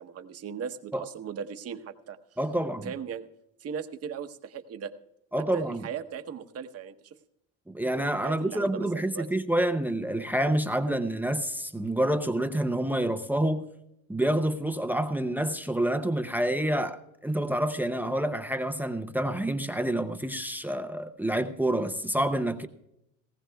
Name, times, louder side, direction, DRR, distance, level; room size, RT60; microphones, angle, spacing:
voice 1, 0.0-2.2 2.8-3.3 3.6-4.9 5.5-7.2 8.2-9.3, right 7 dB, 40° right, 0.9 m, -38 dB
voice 2, 2.4-2.9 5.3-5.8 7.7-13.7 14.1-22.7, right 1 dB, 5° right, 0.5 m, -28 dB
18.5 x 16.0 x 2.3 m
cardioid pair, 145°, 36 cm